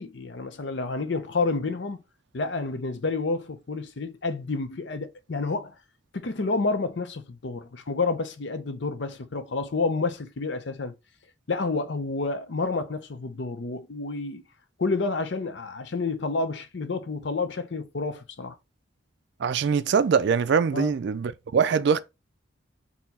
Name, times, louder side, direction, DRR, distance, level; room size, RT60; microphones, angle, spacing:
voice 1, 0.0-2.0 2.3-5.7 6.1-10.9 11.5-14.4 14.8-18.5 20.7-20.9, left 3 dB, 60° left, 0.6 m, -29 dB
voice 2, 19.4-22.0, right 6 dB, 55° right, 0.3 m, -23 dB
4.4 x 2.8 x 4.1 m
head